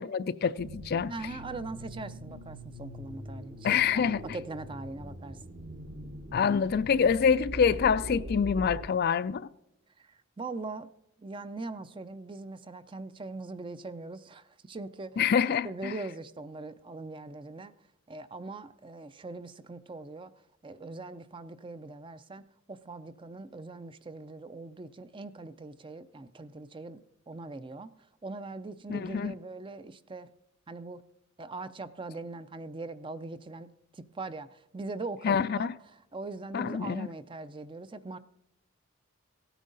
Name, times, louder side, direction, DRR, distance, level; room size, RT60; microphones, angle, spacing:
voice 1, 0.0-1.1 3.6-4.2 6.3-9.4 15.2-15.9 28.9-29.3 35.2-35.7 36.5-37.1, left 6 dB, 45° left, 0.4 m, -26 dB
sound 1, 0.6-8.9, equal, 55° right, 1.2 m, -42 dB
voice 2, 1.1-5.4 10.0-10.9 11.2-15.2 15.6-17.7 18.1-20.3 20.6-27.9 28.2-30.3 30.7-31.1 31.4-38.2, right 3 dB, 25° right, 0.4 m, -41 dB
17.0 x 9.1 x 3.9 m
head